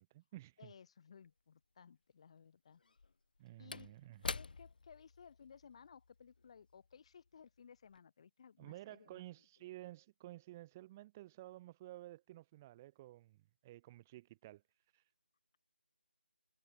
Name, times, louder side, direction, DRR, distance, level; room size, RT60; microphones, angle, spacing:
voice 1, 0.0-0.7 3.4-4.2 8.6-14.6 14.9-15.1, right 16 dB, 15° right, 1.2 m, -53 dB
voice 2, 0.6-2.8 3.6-3.9 4.2-9.2, left 7 dB, 30° left, 3.1 m, -59 dB
Slam / Wood, 1.2-1.3 2.8-7.5 7.8-8.0, left 4 dB, 50° left, 0.9 m, -48 dB
figure-of-eight pair, 165°, 6 cm